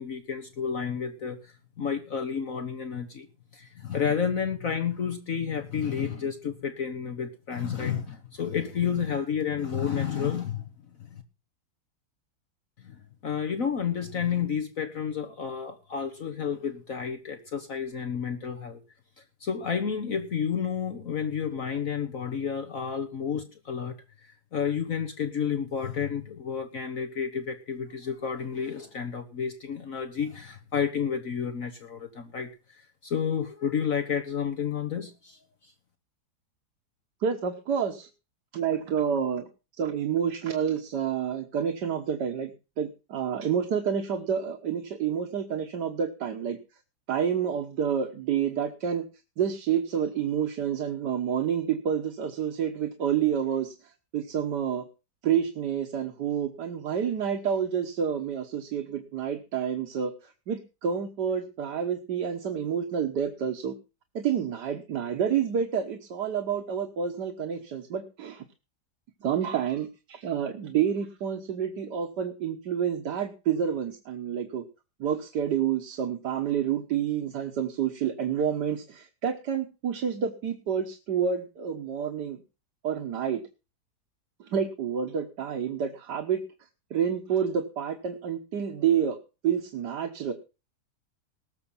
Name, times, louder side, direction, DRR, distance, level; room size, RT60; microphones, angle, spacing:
voice 1, 0.0-3.3 3.5-10.7 11.0-11.2 12.8-12.9 13.2-18.8 19.4-24.0 24.2-35.7, left 7 dB, 55° left, 7 dB, 1.6 m, -31 dB
voice 2, 37.2-38.1 38.5-39.5 39.8-46.6 47.1-49.0 49.4-53.7 54.1-54.8 55.2-63.8 64.2-68.5 69.2-74.6 75.0-82.4 82.8-83.4 84.4-86.4 86.9-89.2 89.4-90.3, right 8 dB, 80° right, 5 dB, 1.8 m, -29 dB
19.0 x 7.0 x 5.6 m, 0.32 s
omnidirectional pair, 1.8 m